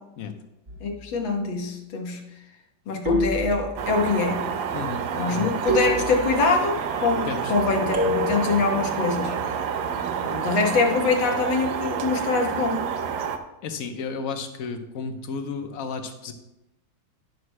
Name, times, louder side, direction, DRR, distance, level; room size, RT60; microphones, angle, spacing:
sound 1, 0.7-1.2 3.1-4.0 5.7-6.6 7.9-8.7, equal, 45° right, 1.9 m, -27 dB
voice 1, 0.8-2.2 2.9-4.5 5.2-9.4 10.2-12.9, left 4 dB, 90° left, 1 dB, 1.9 m, -24 dB
sound 2, 3.8-13.4, right 7 dB, 90° right, 1.4 m, -29 dB
voice 2, 4.7-5.5 7.3-7.5 13.6-16.3, left 5 dB, 55° left, 6 dB, 1.1 m, -33 dB
18.0 x 6.3 x 2.2 m, 0.92 s
omnidirectional pair, 2.0 m